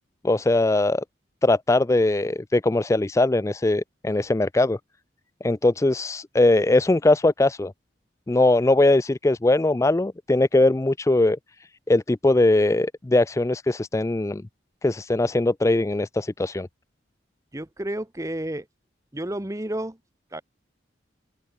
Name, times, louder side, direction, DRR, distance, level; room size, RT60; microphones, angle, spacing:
voice 1, 0.2-1.0 1.4-4.8 5.4-7.7 8.3-11.4 11.9-14.4 14.8-16.7, left 2 dB, 15° left, 0.3 m, -21 dB
voice 2, 17.5-18.6 19.1-20.0 20.3-20.4, right 1 dB, 15° right, 1.0 m, -31 dB
open air
head